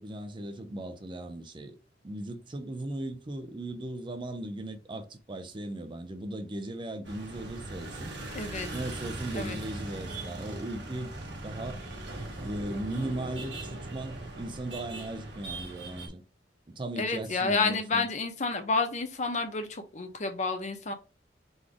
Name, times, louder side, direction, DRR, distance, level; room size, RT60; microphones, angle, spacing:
voice 1, 0.0-1.8 2.0-8.1 8.7-11.2 11.4-11.8 12.4-16.2 16.7-18.0, right 1 dB, 25° right, 0.5 m, -37 dB
sound 1, 7.0-16.1, right 2 dB, 80° right, 1.4 m, -40 dB
voice 2, 8.3-8.7 9.3-9.6 17.0-20.9, left 4 dB, 40° left, 0.8 m, -30 dB
3.9 x 3.3 x 3.6 m
head